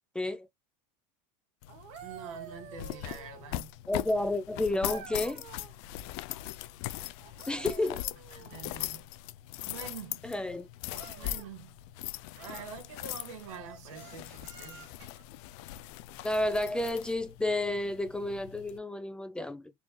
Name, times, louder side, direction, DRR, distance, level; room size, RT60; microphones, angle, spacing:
voice 1, 0.1-0.5 3.9-5.4 7.5-8.0 10.2-10.7 16.2-19.7, left 1 dB, 5° left, 0.5 m, -31 dB
sound 1, 1.6-18.8, left 15 dB, 60° left, 0.4 m, -41 dB
sound 2, 1.7-3.7 4.8-5.8 7.2-8.8 10.9-11.5 12.3-12.8 13.4-15.2 17.1-17.3, right 7 dB, 65° right, 1.4 m, -49 dB
voice 2, 2.0-3.7 8.3-9.1 9.6-10.2 11.1-11.7 12.4-14.9, right 6 dB, 90° right, 2.0 m, -46 dB
4.3 x 2.9 x 3.1 m
supercardioid pair, 140°, 17 cm